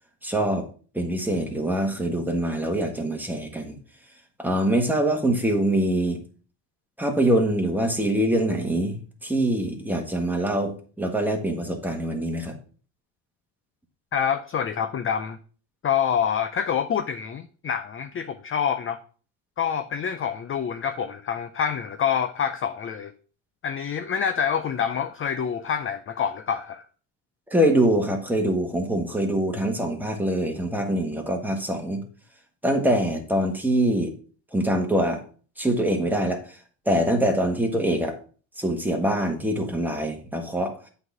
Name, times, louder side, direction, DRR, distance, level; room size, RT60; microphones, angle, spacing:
voice 1, 0.2-0.7 0.9-3.8 4.4-6.2 7.0-12.6 27.5-32.0 32.6-34.1 34.5-35.2 35.6-36.6 36.8-38.2 38.6-40.8, right 1 dB, 5° right, 1.5 m, -24 dB
voice 2, 14.1-15.4 15.8-19.0 19.6-23.1 23.6-26.9, left 7 dB, 30° left, 0.4 m, -26 dB
8.0 x 4.1 x 6.0 m
cardioid pair, 125°, 46 cm